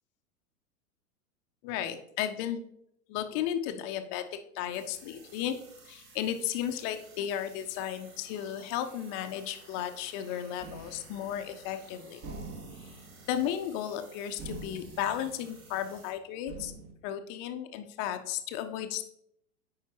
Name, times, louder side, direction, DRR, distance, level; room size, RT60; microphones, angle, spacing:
voice 1, 1.6-2.6 3.1-5.6 5.9-12.2 13.3-16.7 17.0-19.0, left 10 dB, 30° left, 8 dB, 0.4 m, -34 dB
sound 1, 4.7-16.1, right 3 dB, 65° right, 1.6 m, -55 dB
sound 2, 10.6-11.8 12.2-14.1 14.4-16.1 16.5-16.9, right 3 dB, 40° right, 1.6 m, -45 dB
8.2 x 4.9 x 2.9 m, 0.73 s
hypercardioid pair, 100°, 46 cm